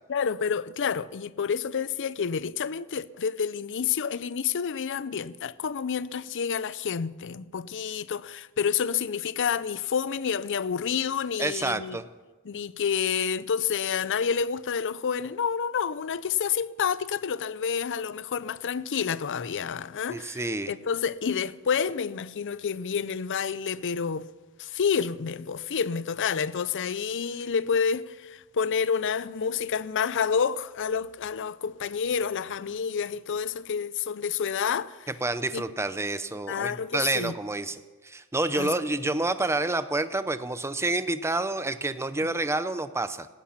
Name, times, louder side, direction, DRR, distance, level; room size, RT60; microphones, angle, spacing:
voice 1, 0.1-12.0 12.5-20.4 20.7-24.3 24.6-35.1 35.5-35.6 36.5-37.3 38.5-38.7 42.2-42.3, left 6 dB, 55° left, 0.5 m, -29 dB
voice 2, 11.4-12.0 20.1-20.7 35.2-43.3, right 2 dB, 10° right, 0.6 m, -28 dB
17.5 x 13.0 x 5.7 m
head